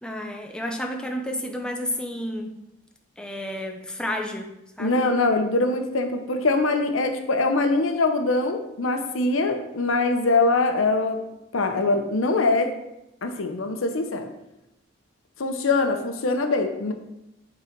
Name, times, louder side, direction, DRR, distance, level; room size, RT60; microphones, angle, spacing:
voice 1, 0.0-2.5 3.2-4.5 4.8-5.0, left 1 dB, 5° left, 2 dB, 0.6 m, -31 dB
voice 2, 4.8-11.2 11.5-12.7 13.2-14.3 15.4-16.9, left 3 dB, 75° left, 6 dB, 0.8 m, -23 dB
8.7 x 3.9 x 4.5 m, 0.90 s
head